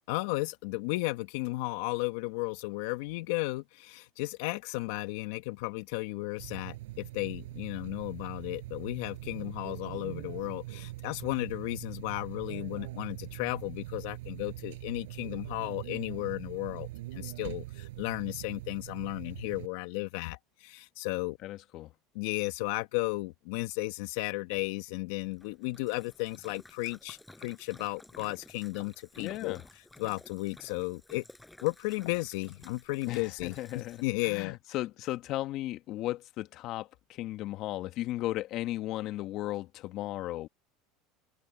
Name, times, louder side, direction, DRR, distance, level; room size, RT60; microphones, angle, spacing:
voice 1, 0.1-21.4 22.1-29.6 30.0-31.2 31.6-34.6, left 22 dB, 75° left, 1.2 m, -34 dB
sound 1, 6.4-19.7, right 17 dB, 80° right, 7.2 m, -42 dB
voice 2, 21.4-21.9 29.2-29.6 33.1-40.5, left 15 dB, 55° left, 1.6 m, -36 dB
Splash splatter, 25.2-34.3, left 1 dB, 5° left, 6.5 m, -54 dB
supercardioid pair, 95°, 0 cm